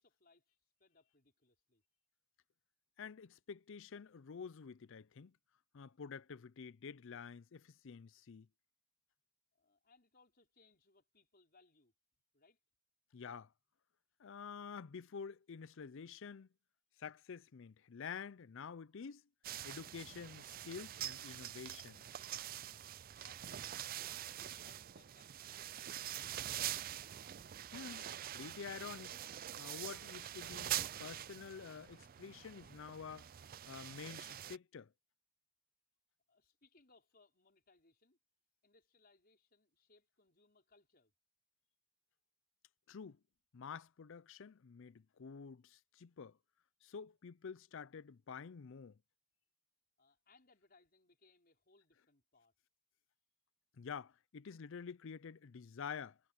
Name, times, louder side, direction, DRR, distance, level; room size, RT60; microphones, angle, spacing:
voice 1, 0.0-1.8 9.5-11.9 12.3-12.6 23.2-26.5 36.3-38.2 38.6-41.1 50.0-52.5, left 3 dB, 45° left, 5.3 m, -70 dB
voice 2, 3.0-5.3 5.7-8.5 13.1-13.5 14.2-16.5 17.0-19.2 19.6-22.0 27.7-28.1 28.3-29.1 29.6-33.3 33.7-34.9 42.9-43.2 43.5-46.4 46.8-49.0 53.8-56.2, left 6 dB, 60° left, 0.5 m, -49 dB
sound 1, 19.4-34.6, right 12 dB, 40° right, 0.4 m, -45 dB
head